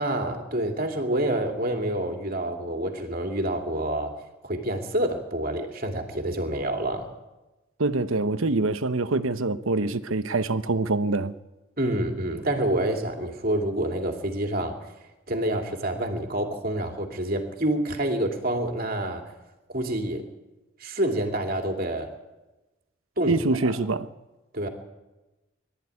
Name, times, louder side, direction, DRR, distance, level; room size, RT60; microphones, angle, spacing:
voice 1, 0.0-4.1 4.4-7.1 11.8-14.8 15.3-19.3 19.7-20.3 20.8-22.1 23.2-23.7 24.5-24.7, right 1 dB, 45° right, 2.8 m, -27 dB
voice 2, 7.8-11.3 23.3-24.1, right 3 dB, 80° right, 1.1 m, -25 dB
23.5 x 13.5 x 9.7 m
head